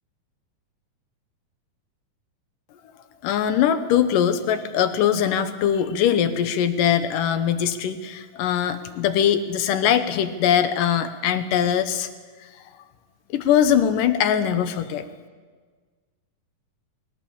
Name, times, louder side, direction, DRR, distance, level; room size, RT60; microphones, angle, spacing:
voice 1, 3.2-12.1 12.6-12.7 13.3-15.1, left 9 dB, 85° left, 10 dB, 2.7 m, -21 dB
21.5 x 17.0 x 7.3 m, 1.5 s
omnidirectional pair, 3.7 m